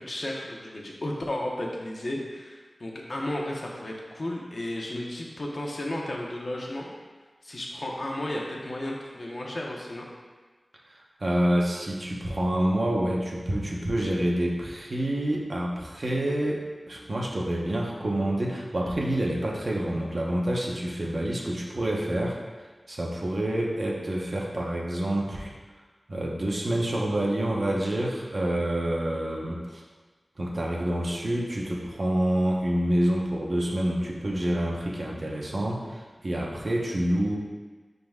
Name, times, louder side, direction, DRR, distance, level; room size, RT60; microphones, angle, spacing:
voice 1, 0.0-6.9 7.4-10.1, left 1 dB, 60° left, -2 dB, 1.0 m, -33 dB
voice 2, 10.9-22.4 22.9-25.5 26.1-29.8 30.4-37.4, right 1 dB, 60° right, -2 dB, 1.1 m, -27 dB
10.0 x 4.0 x 2.4 m, 1.4 s
wide cardioid pair, 55°, 0 cm